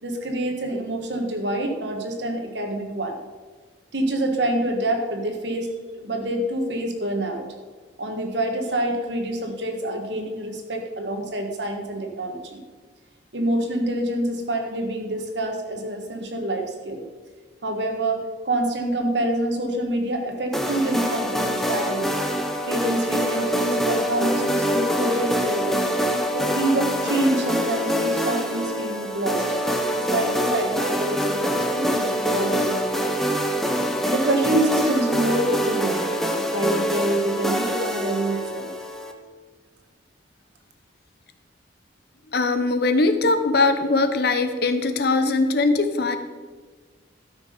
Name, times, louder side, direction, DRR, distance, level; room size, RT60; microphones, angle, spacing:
voice 1, 0.0-3.2 3.9-5.7 6.0-7.4 8.0-12.6 13.3-17.1 17.6-22.1 22.7-25.9 26.3-29.4 29.9-33.2 34.1-36.0 36.3-38.7, right 1 dB, 70° right, 4 dB, 1.5 m, -26 dB
sound 1, 20.5-39.1, equal, ahead, 0.7 m, -25 dB
voice 2, 42.3-46.2, left 3 dB, 60° left, 9 dB, 0.8 m, -21 dB
13.0 x 6.2 x 5.2 m, 1.4 s
head